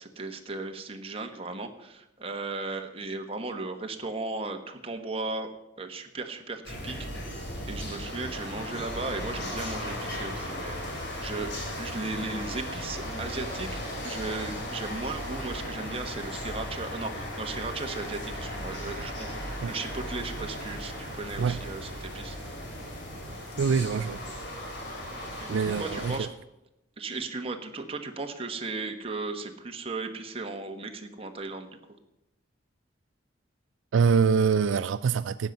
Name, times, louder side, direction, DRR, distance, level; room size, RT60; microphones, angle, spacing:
voice 1, 0.0-5.5 5.8-22.4 25.4-26.3 27.0-31.7, right 3 dB, 30° right, 1.3 m, -36 dB
sound 1, 6.6-26.2, equal, 60° left, 3.1 m, -36 dB
voice 2, 23.6-24.2 25.5-26.3 33.9-35.5, right 6 dB, 80° right, 0.4 m, -24 dB
12.5 x 9.2 x 5.4 m
head